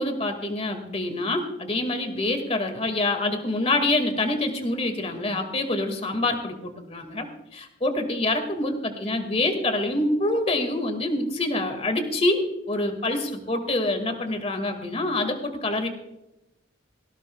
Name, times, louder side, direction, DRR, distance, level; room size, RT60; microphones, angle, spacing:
voice 1, 0.0-15.9, left 2 dB, 30° left, 6 dB, 2.0 m, -26 dB
18.5 x 16.0 x 2.3 m, 0.91 s
head